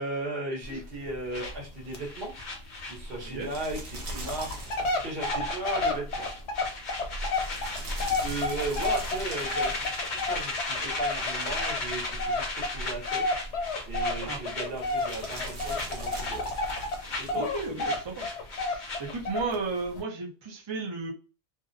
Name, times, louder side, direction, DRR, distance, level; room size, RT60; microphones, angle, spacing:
voice 1, 0.0-2.3 2.8-6.3 8.2-13.4 13.9-16.5 17.2-17.5, right 2 dB, 60° right, -1 dB, 1.0 m, -36 dB
sound 1, 0.6-0.8 1.1-1.2 1.5-1.6 1.9-2.0 2.4-2.5 3.0-3.1 3.7-3.8 4.2-17.0 17.3-19.6 20.0-20.1, left 2 dB, 85° left, 0.9 m, -31 dB
sound 2, 1.3-3.6 3.8-4.1 4.4-19.3, left 2 dB, 50° left, 0.9 m, -36 dB
sound 3, 1.4-18.3, equal, 85° right, 1.1 m, -43 dB
voice 2, 17.3-18.3 18.6-21.1, right 3 dB, 35° right, 0 dB, 0.5 m, -34 dB
2.5 x 2.0 x 2.5 m, 0.32 s
omnidirectional pair, 1.1 m